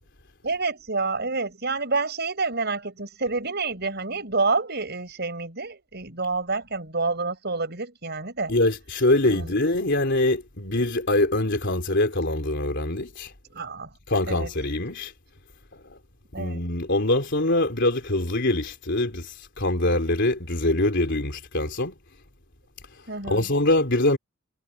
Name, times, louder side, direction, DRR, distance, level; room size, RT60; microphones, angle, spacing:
voice 1, 0.4-8.5 9.3-9.5 13.5-13.9 14.3-14.5 16.3-16.6 23.1-23.5, right 3 dB, 55° right, 7.2 m, -28 dB
voice 2, 8.5-13.3 14.1-15.1 15.9-16.0 16.4-21.9 22.9-24.2, left 2 dB, 60° left, 3.6 m, -24 dB
head